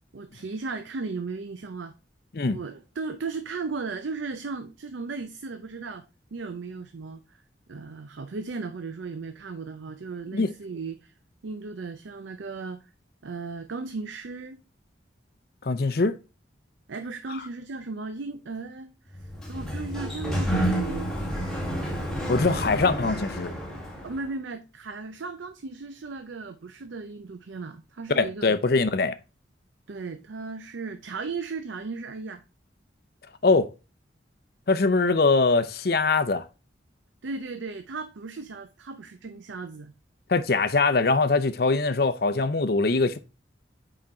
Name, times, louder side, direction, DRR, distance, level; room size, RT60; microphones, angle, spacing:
voice 1, 0.1-1.9 2.5-6.0 6.3-7.2 7.7-11.1 11.4-12.8 13.2-14.6 16.9-18.9 19.5-21.1 24.0-28.5 29.9-32.4 37.2-39.9, right 4 dB, 80° right, 0.5 m, -36 dB
voice 2, 15.6-16.2 17.3-17.4 22.3-23.5 28.2-29.1 33.4-33.7 34.7-36.4 40.3-43.2, left 3 dB, 55° left, 0.6 m, -22 dB
Sliding door, 19.1-24.3, equal, 5° left, 1.5 m, -30 dB
6.0 x 5.0 x 4.3 m
head